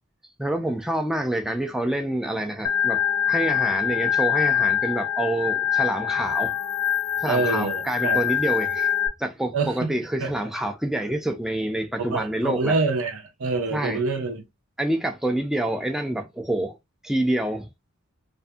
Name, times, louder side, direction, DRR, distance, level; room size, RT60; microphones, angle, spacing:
voice 1, 0.4-3.0 3.3-6.5 7.2-8.9 9.2-12.8 13.7-14.0 14.8-16.8 17.0-17.7, right 1 dB, ahead, 0.3 m, -27 dB
Organ, 2.6-9.1, left 9 dB, 85° left, 0.5 m, -24 dB
voice 2, 7.3-8.2 9.5-9.9 10.2-10.3 12.0-14.4, right 3 dB, 75° right, 0.7 m, -26 dB
2.6 x 2.5 x 2.3 m
head